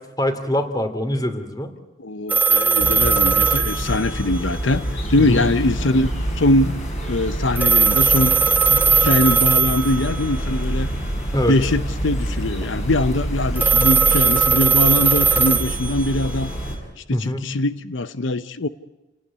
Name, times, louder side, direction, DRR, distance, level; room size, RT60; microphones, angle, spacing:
voice 1, 0.2-1.7 5.2-5.4 10.9-11.0 11.3-11.6 12.6-12.7 17.1-17.4, equal, 20° left, 8 dB, 2.7 m, -23 dB
voice 2, 2.0-4.8 5.1-6.8 7.1-8.4 8.7-10.9 11.5-16.5 17.0-18.7, left 2 dB, 90° left, 13 dB, 0.9 m, -22 dB
sound 1, 2.3-4.6 7.6-10.4 13.6-16.5, right 6 dB, 10° right, 1.3 m, -18 dB
sound 2, 2.8-16.8, right 1 dB, 40° left, 7.1 m, -27 dB
29.5 x 18.0 x 9.8 m, 1.1 s
head